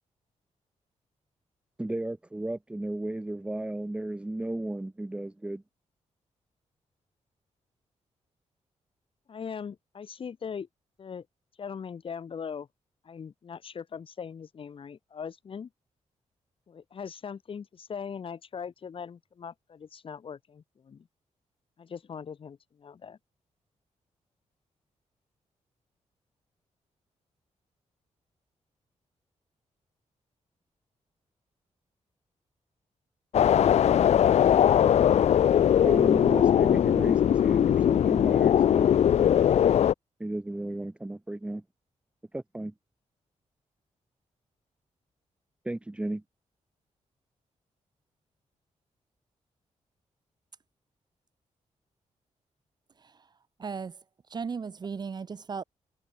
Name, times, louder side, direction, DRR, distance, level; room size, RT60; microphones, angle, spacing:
voice 1, 1.8-5.6 35.8-38.9 40.2-41.6 42.3-42.7 45.6-46.2, right 1 dB, 10° right, 1.0 m, -34 dB
voice 2, 9.3-10.7 11.0-11.3 11.6-12.7 13.0-15.7 16.7-21.1 21.8-23.2, left 6 dB, 45° left, 4.6 m, -40 dB
sound 1, 33.3-39.9, left 9 dB, 65° left, 0.6 m, -20 dB
voice 3, 53.6-54.0 54.3-55.6, right 5 dB, 35° right, 1.0 m, -36 dB
wide cardioid pair, 160°, 12 cm